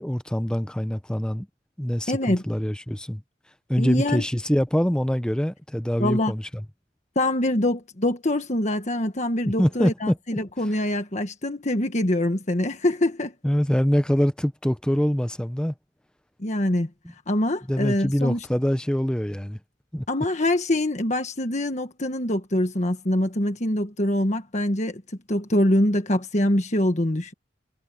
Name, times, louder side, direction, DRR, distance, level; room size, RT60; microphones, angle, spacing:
voice 1, 0.0-1.5 1.8-3.2 3.7-6.4 9.4-10.2 13.4-15.7 17.7-19.6 19.9-20.0, equal, 5° left, 0.6 m, -24 dB
voice 2, 2.1-2.4 3.8-4.2 6.0-6.3 7.1-13.3 16.4-16.9 17.3-18.5 20.1-27.3, left 1 dB, 40° left, 1.5 m, -24 dB
head